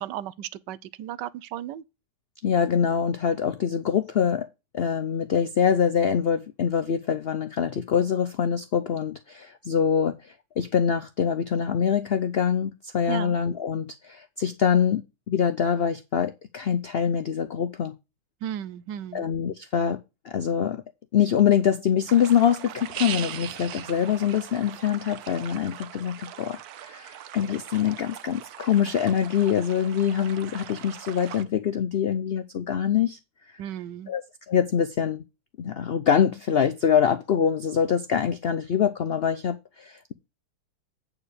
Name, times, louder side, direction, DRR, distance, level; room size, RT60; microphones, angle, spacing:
voice 1, 0.0-1.8 13.1-13.4 18.4-19.3 33.6-34.1, right 11 dB, 90° right, 1.3 m, -35 dB
voice 2, 2.4-4.5 4.7-17.9 19.1-20.8 21.1-33.2 34.1-34.2 34.5-35.2 35.6-40.1, left 8 dB, 85° left, 0.5 m, -24 dB
sound 1, 22.1-31.4, right 11 dB, 70° right, 1.1 m, -40 dB
8.7 x 4.9 x 6.4 m
omnidirectional pair, 1.8 m